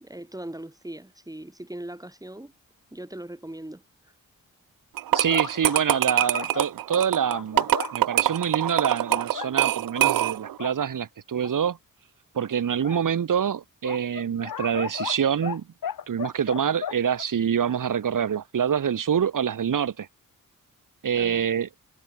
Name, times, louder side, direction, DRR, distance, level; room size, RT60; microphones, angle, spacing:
voice 1, 0.0-2.5 2.9-4.1 21.2-21.5, right 1 dB, 10° right, 3.0 m, -40 dB
sound 1, 5.0-10.5, right 13 dB, 85° right, 0.6 m, -24 dB
sound 2, 5.1-8.0 8.7-9.5 10.0-10.1 10.5-10.7 11.4-11.5 12.8-13.0 13.8-15.6 15.8-17.2, left 8 dB, 85° left, 2.5 m, -35 dB
voice 2, 5.1-11.8 12.3-15.7 16.1-20.1 21.0-21.7, right 8 dB, 65° right, 1.5 m, -26 dB
cardioid pair, 85°, 34 cm